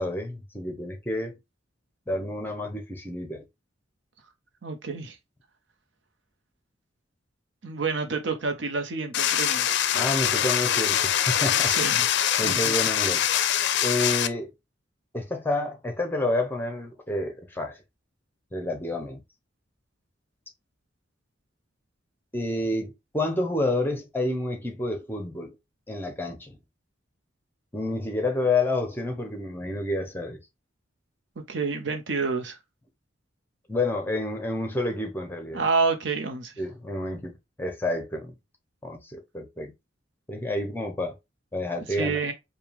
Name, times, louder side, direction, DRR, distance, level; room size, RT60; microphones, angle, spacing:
voice 1, 0.0-1.3 2.1-3.4 9.9-11.7 12.4-13.5 13.8-14.5 15.1-17.8 18.5-19.2 22.3-25.6 25.9-26.6 27.7-30.4 33.7-35.6 36.6-38.3 38.8-39.7 40.3-41.2 41.5-42.2, left 2 dB, 10° left, 0.9 m, -29 dB
voice 2, 4.6-5.2 7.6-10.0 11.7-12.1 12.4-12.6 31.4-32.6 35.5-36.5 41.9-42.3, right 4 dB, 70° right, 0.9 m, -28 dB
sound 1, 9.1-14.3, left 10 dB, 65° left, 0.4 m, -24 dB
4.8 x 2.4 x 3.5 m
head